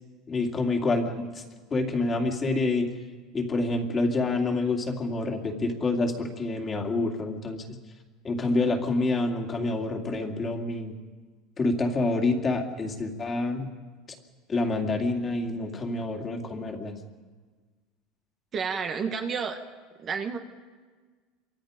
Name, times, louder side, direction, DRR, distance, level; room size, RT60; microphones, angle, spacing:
voice 1, 0.3-1.4 1.7-2.9 3.3-7.6 8.2-10.9 11.6-13.7 14.5-17.0, left 2 dB, 20° left, 2 dB, 2.7 m, -27 dB
voice 2, 18.5-19.6 20.0-20.4, right 6 dB, 30° right, 4 dB, 1.5 m, -30 dB
27.0 x 24.5 x 5.2 m, 1.5 s
supercardioid pair, 145°, 0 cm